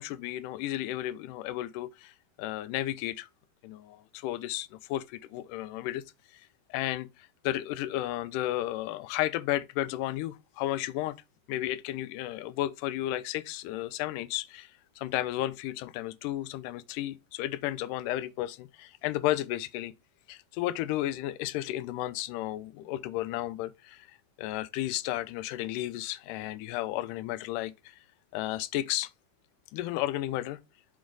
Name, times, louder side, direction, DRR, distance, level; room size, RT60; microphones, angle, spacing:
voice 1, 0.0-3.3 3.6-6.0 6.3-11.2 11.5-19.9 20.3-28.0 28.3-29.1 29.7-30.6, left 14 dB, 80° left, 2.0 m, -33 dB
6.1 x 4.2 x 4.6 m
omnidirectional pair, 3.8 m